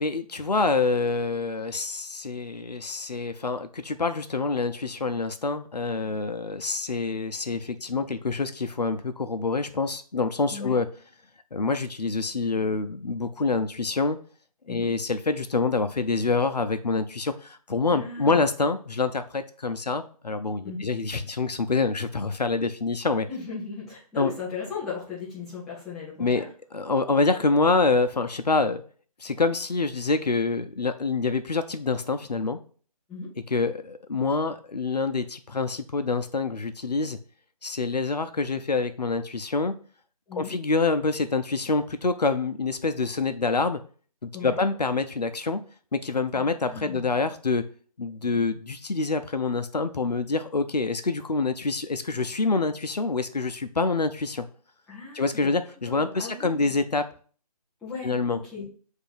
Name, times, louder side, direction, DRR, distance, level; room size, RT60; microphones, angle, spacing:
voice 1, 0.0-10.9 11.5-14.2 14.7-23.3 24.2-24.3 26.2-26.5 26.7-28.8 29.2-32.6 33.5-37.2 37.6-39.7 40.3-43.8 44.2-45.6 45.9-47.6 48.0-54.5 55.1-57.0 58.0-58.4, left 3 dB, 85° left, 10 dB, 0.6 m, -26 dB
voice 2, 17.9-18.5 20.6-20.9 23.3-26.5 33.1-33.3 40.3-40.5 44.3-44.6 46.3-47.1 54.9-55.5 55.9-56.7 57.8-58.6, left 5 dB, ahead, -10 dB, 0.4 m, -37 dB
7.7 x 2.7 x 2.5 m, 0.43 s
figure-of-eight pair, 150°, 20 cm